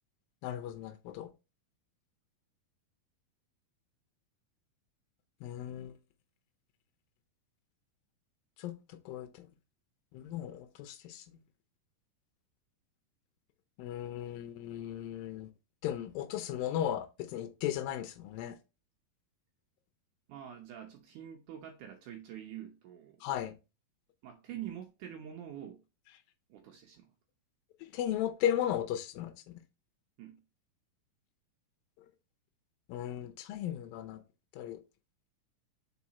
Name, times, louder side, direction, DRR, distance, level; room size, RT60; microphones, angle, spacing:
voice 1, 0.4-1.3 5.4-5.9 8.6-9.5 10.1-11.3 13.8-15.5 15.8-18.6 23.2-23.5 27.8-29.5 32.0-32.1 32.9-34.2 34.5-34.8, left 11 dB, 80° left, 2.4 m, -36 dB
voice 2, 20.3-23.2 24.2-25.8 26.5-27.1 30.2-30.4, right 10 dB, 70° right, 2.1 m, -46 dB
4.9 x 4.8 x 4.1 m
omnidirectional pair, 4.1 m